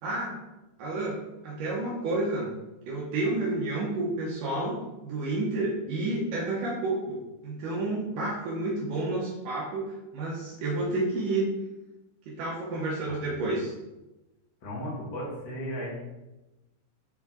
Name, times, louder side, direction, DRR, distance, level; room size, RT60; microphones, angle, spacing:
voice 1, 0.0-0.3 0.8-2.5 2.9-11.4 12.3-13.7, right 2 dB, 80° right, -4 dB, 1.9 m, -30 dB
voice 2, 14.6-15.9, equal, 60° left, -5 dB, 1.0 m, -35 dB
7.2 x 4.7 x 4.2 m, 1.0 s
omnidirectional pair, 5.2 m